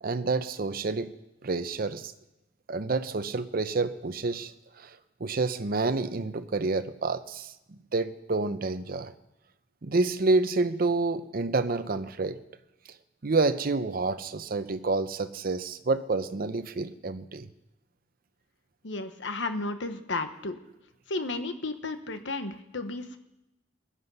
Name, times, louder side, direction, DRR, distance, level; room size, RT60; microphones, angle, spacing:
voice 1, 0.0-1.1 1.4-2.1 2.7-4.5 4.8-4.9 5.2-9.1 9.8-12.4 13.2-17.5, right 3 dB, 50° right, 11 dB, 0.7 m, -28 dB
voice 2, 18.8-20.6 21.1-23.2, left 3 dB, 80° left, 9 dB, 1.1 m, -33 dB
21.0 x 9.8 x 5.5 m, 0.94 s
head